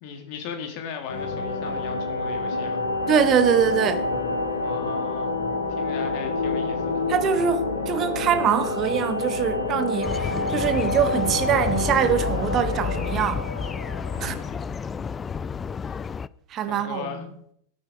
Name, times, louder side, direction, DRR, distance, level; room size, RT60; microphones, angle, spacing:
voice 1, 0.0-2.8 4.6-5.4 5.8-7.0 14.1-14.8 15.8-16.1 16.7-17.2, left 6 dB, 45° left, 2.0 m, -37 dB
sound 1, 1.1-14.7, left 2 dB, 75° left, 1.8 m, -28 dB
voice 2, 3.1-4.1 7.1-13.5 14.2-14.3 16.5-17.3, right 8 dB, 30° right, 1.1 m, -23 dB
sound 2, 10.0-16.3, left 6 dB, 20° left, 0.3 m, -30 dB
13.0 x 9.1 x 4.9 m
figure-of-eight pair, 90°, 0 cm